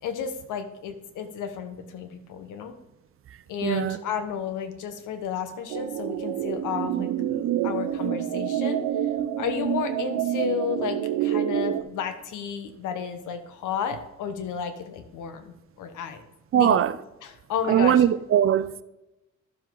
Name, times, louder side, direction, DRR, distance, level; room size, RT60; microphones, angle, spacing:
voice 1, 0.0-2.7 3.5-8.8 9.4-16.2 16.5-16.8 17.2-18.0, left 7 dB, 85° left, 1.1 m, -32 dB
voice 2, 3.6-4.0 16.5-16.9 17.7-18.8, right 10 dB, 45° right, 0.5 m, -20 dB
sound 1, 5.7-11.8, right 11 dB, 90° right, 0.6 m, -27 dB
12.0 x 7.5 x 3.8 m
cardioid pair, 90°, 30 cm